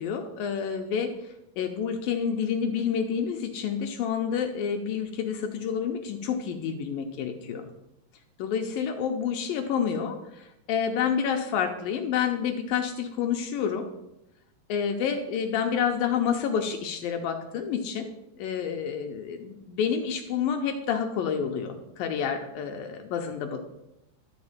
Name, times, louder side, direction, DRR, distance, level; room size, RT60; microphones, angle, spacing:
voice 1, 0.0-7.7 8.4-13.9 14.7-18.1 18.4-23.6, left 7 dB, 75° left, 4 dB, 2.3 m, -29 dB
13.0 x 5.4 x 8.8 m, 0.88 s
omnidirectional pair, 4.7 m